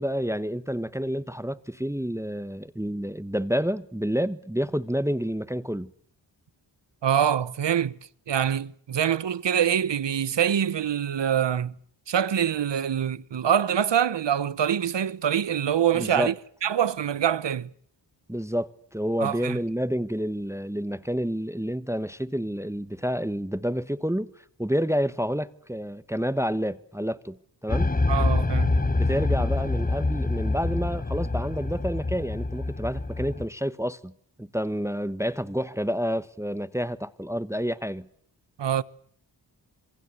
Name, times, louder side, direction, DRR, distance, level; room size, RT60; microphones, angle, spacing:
voice 1, 0.0-5.9 15.9-16.3 18.3-24.3 24.6-27.4 27.6-27.9 28.9-34.1 34.4-38.1, equal, 5° right, 1.2 m, -29 dB
voice 2, 7.0-8.0 8.3-11.7 12.1-16.3 16.6-17.7 19.2-19.6 28.1-28.7 38.6-38.8, right 9 dB, 70° right, 1.0 m, -25 dB
sound 1, 27.7-33.5, left 2 dB, 20° left, 1.2 m, -26 dB
27.0 x 22.0 x 8.2 m
cardioid pair, 55°, 44 cm